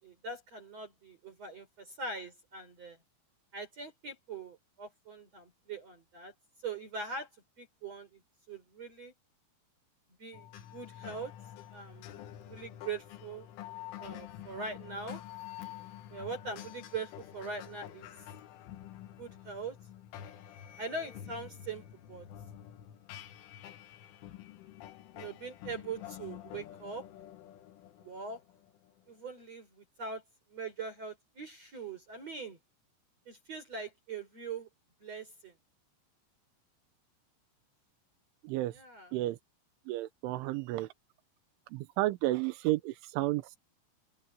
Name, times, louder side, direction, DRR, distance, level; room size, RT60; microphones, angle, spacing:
voice 1, 0.0-3.0 3.5-6.3 6.6-7.3 7.6-8.2 8.5-9.1 10.2-11.3 11.7-13.5 14.0-15.2 16.1-18.1 19.2-19.8 20.8-22.3 25.2-27.1 28.0-28.4 29.1-30.2 30.5-32.6 33.3-34.7 35.0-35.5 38.7-39.1, right 4 dB, 35° right, 5.2 m, -42 dB
sound 1, 10.3-29.1, left 12 dB, 85° left, 4.0 m, -48 dB
voice 2, 39.9-40.9 41.7-43.6, right 17 dB, 90° right, 3.3 m, -32 dB
omnidirectional pair, 5.5 m